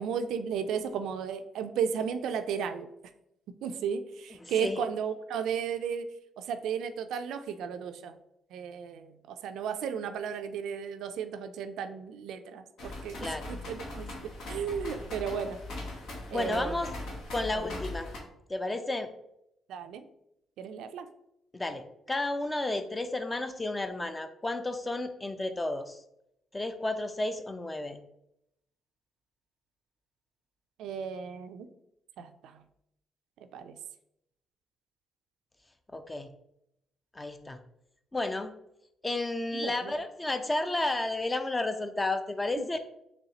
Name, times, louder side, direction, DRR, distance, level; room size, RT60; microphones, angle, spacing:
voice 1, 0.0-2.9 3.6-6.1 6.4-8.2 8.5-13.2 13.5-14.1 14.5-15.6 16.3-16.9 17.5-17.6 19.7-20.0 20.6-21.1 30.8-31.7 32.2-32.6 33.5-33.8 39.5-39.9 42.6-42.7, right 7 dB, 85° right, 9 dB, 0.3 m, -34 dB
voice 2, 4.4-4.8 13.2-13.5 16.3-16.9 17.3-18.1 18.5-19.1 21.5-26.0 26.5-28.0 35.9-36.3 37.1-37.6 38.1-38.5 39.0-42.8, left 2 dB, 20° left, 9 dB, 0.4 m, -32 dB
sound 1, 12.8-18.2, left 2 dB, 75° left, 1.1 m, -40 dB
4.1 x 3.2 x 2.8 m, 0.80 s
cardioid pair, 90°, 0 cm